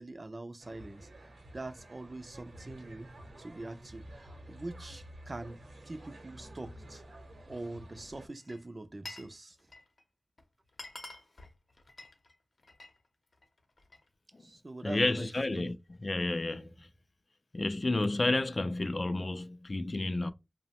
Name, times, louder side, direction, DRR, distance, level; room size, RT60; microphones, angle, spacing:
voice 1, 0.0-3.1 3.4-5.6 5.8-7.0 7.5-9.6 14.4-15.7, right 2 dB, 40° right, 0.3 m, -44 dB
sound 1, 0.6-8.3, right 1 dB, 85° right, 0.8 m, -50 dB
Glass, 8.3-9.3 9.6-10.0 10.4-10.5 10.7-13.0 13.3-14.1, left 2 dB, 65° left, 0.7 m, -48 dB
voice 2, 14.8-15.8 16.0-16.9 17.5-20.3, left 2 dB, 45° left, 0.3 m, -31 dB
2.9 x 2.1 x 2.8 m
wide cardioid pair, 80°, 0 cm